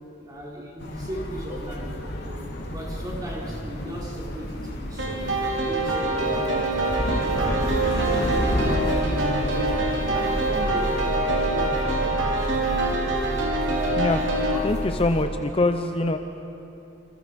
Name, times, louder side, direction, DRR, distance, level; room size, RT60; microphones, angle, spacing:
voice 1, 0.2-5.3 5.6-6.6 6.9-8.8 9.2-12.7, equal, 20° right, -4 dB, 5.3 m, -37 dB
sound 1, 0.8-15.2, equal, 55° left, 3.0 m, -30 dB
sound 2, 5.0-14.6, right 2 dB, 70° right, 3.2 m, -25 dB
voice 2, 14.6-16.2, left 2 dB, 30° left, 6 dB, 0.8 m, -23 dB
28.5 x 27.0 x 5.3 m, 2.8 s
head